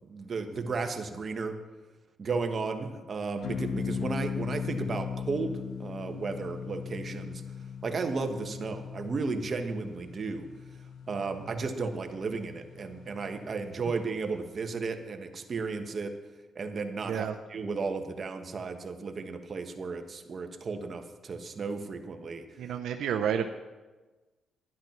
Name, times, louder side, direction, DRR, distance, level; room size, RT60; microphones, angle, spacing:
voice 1, 0.0-1.6 2.2-7.4 7.8-10.5 11.1-16.2 16.5-22.5, right 4 dB, 40° right, 6 dB, 1.3 m, -34 dB
sound 1, 3.4-14.0, left 6 dB, 70° left, 1.2 m, -39 dB
voice 2, 22.6-23.5, right 8 dB, 80° right, 6 dB, 0.6 m, -30 dB
11.5 x 10.5 x 5.9 m, 1.2 s
cardioid pair, 105°, 0 cm